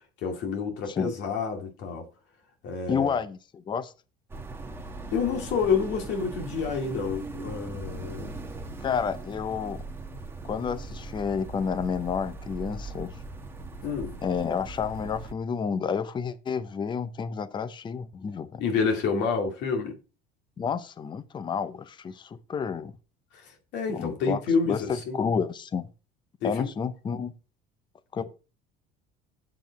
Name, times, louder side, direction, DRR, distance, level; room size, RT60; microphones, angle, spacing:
voice 1, 0.2-2.1 2.6-3.2 5.1-8.3 13.8-14.1 18.6-19.9 23.3-25.2 26.4-26.7, left 5 dB, 65° left, 2.5 m, -28 dB
voice 2, 2.9-3.9 8.8-9.8 10.4-13.1 14.2-18.6 20.6-22.9 23.9-24.4 24.7-25.9 26.4-27.3 28.1-28.2, left 6 dB, 25° left, 0.7 m, -30 dB
sound 1, 4.3-15.3, right 2 dB, 10° right, 1.2 m, -39 dB
7.6 x 7.5 x 4.1 m
cardioid pair, 125°, 20 cm